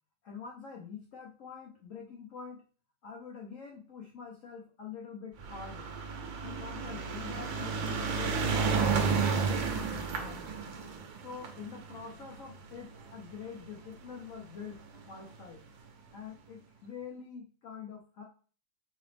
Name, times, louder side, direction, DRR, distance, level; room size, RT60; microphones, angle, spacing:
voice 1, 0.2-2.6 3.0-5.9 6.4-10.5 11.2-14.8 15.1-15.6 16.1-18.2, left 6 dB, 75° left, -1 dB, 0.7 m, -45 dB
sound 1, 5.4-13.9 14.7-14.8 15.0-15.1 15.3-15.4, right 5 dB, 70° right, 1.3 m, -32 dB
5.4 x 3.0 x 3.3 m, 0.40 s
omnidirectional pair, 2.4 m